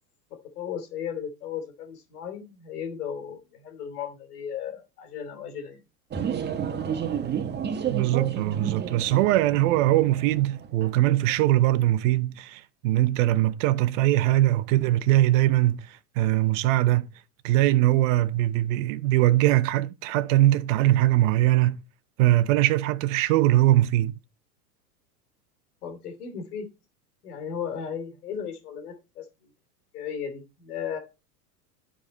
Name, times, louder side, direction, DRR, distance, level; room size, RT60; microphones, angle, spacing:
voice 1, 0.5-5.8 25.8-26.7 27.2-29.5 29.9-31.0, left 7 dB, 70° left, 3.0 m, -35 dB
sound 1, 6.1-11.4, right 8 dB, 20° right, 1.1 m, -31 dB
voice 2, 7.9-17.1 17.4-21.8 22.2-24.1, right 15 dB, 50° right, 0.9 m, -21 dB
13.0 x 4.9 x 4.2 m
hypercardioid pair, 95°, 47 cm